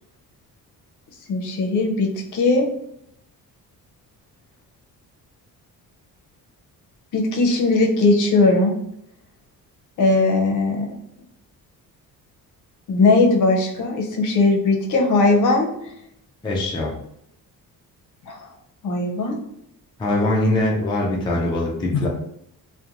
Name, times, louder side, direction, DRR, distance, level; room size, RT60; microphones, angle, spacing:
voice 1, 1.3-2.7 7.1-8.7 10.0-10.9 12.9-15.7 18.2-18.5 18.8-19.4, left 3 dB, 60° left, 1 dB, 0.6 m, -19 dB
voice 2, 16.4-16.9 20.0-22.1, left 1 dB, 15° left, -3 dB, 0.3 m, -22 dB
2.8 x 2.2 x 2.5 m, 0.75 s
cardioid pair, 155°, 35 cm